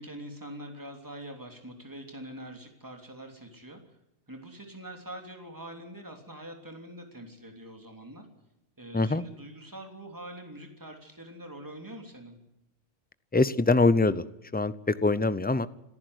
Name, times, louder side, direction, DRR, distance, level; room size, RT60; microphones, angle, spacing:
voice 1, 0.0-3.8 4.3-8.3 8.8-12.4, right 1 dB, 15° right, 3 dB, 3.2 m, -44 dB
voice 2, 13.3-14.2 14.5-15.7, left 3 dB, 10° left, 15 dB, 0.5 m, -23 dB
26.5 x 14.5 x 8.1 m, 0.92 s
omnidirectional pair, 1.2 m